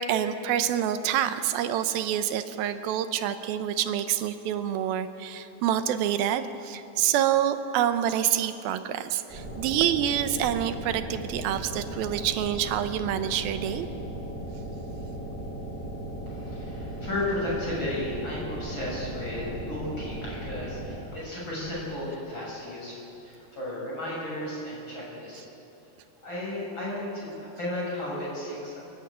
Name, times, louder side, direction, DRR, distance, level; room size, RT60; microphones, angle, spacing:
voice 1, 0.0-13.9, right 10 dB, 90° right, 10 dB, 2.7 m, -27 dB
sound 1, 9.3-20.9, right 1 dB, 25° right, 5.3 m, -37 dB
voice 2, 16.3-25.4 26.2-28.8, left 1 dB, 30° left, -5 dB, 7.4 m, -34 dB
28.0 x 11.0 x 9.0 m, 2.8 s
omnidirectional pair, 4.2 m